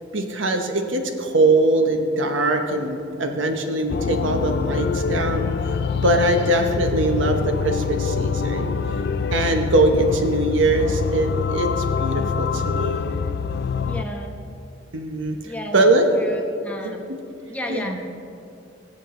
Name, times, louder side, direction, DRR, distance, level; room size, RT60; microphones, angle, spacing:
voice 1, 0.1-5.5 6.0-8.7 9.3-13.1 14.9-16.1 17.7-18.0, right 2 dB, 80° right, 5 dB, 1.1 m, -21 dB
sound 1, 3.9-14.0, left 5 dB, 55° left, 0.4 m, -25 dB
voice 2, 13.8-14.4 15.4-15.9 16.2-17.0 17.5-18.1, left 1 dB, 5° left, 1 dB, 1.0 m, -33 dB
19.5 x 7.6 x 3.8 m, 2.7 s
head